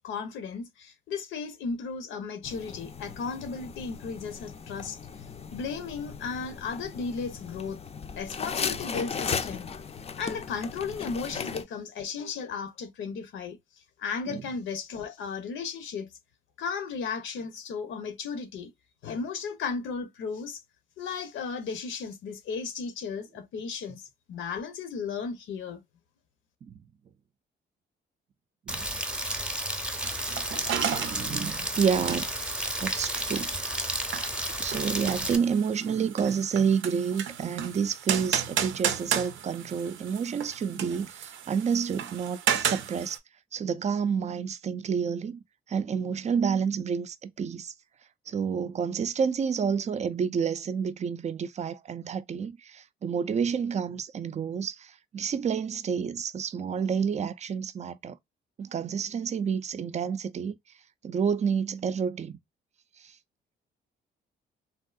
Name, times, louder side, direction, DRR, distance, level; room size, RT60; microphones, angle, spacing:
voice 1, 0.0-5.0 5.5-7.8 8.1-9.7 10.2-13.6 14.0-16.1 16.6-18.7 19.0-20.6 21.0-25.8, left 5 dB, 75° left, 0.7 m, -35 dB
sound 1, 2.4-11.6, left 6 dB, 30° left, 0.4 m, -37 dB
Rain, 28.7-35.4, right 1 dB, 5° right, 0.7 m, -32 dB
sound 2, 30.0-43.2, right 9 dB, 80° right, 0.6 m, -34 dB
voice 2, 31.0-32.3 32.8-33.6 34.6-43.2 43.5-45.4 45.7-47.7 48.3-58.2 58.6-60.6 61.0-62.4 63.0-63.1, right 6 dB, 35° right, 0.4 m, -29 dB
3.5 x 2.6 x 2.3 m
cardioid pair, 90°, 20 cm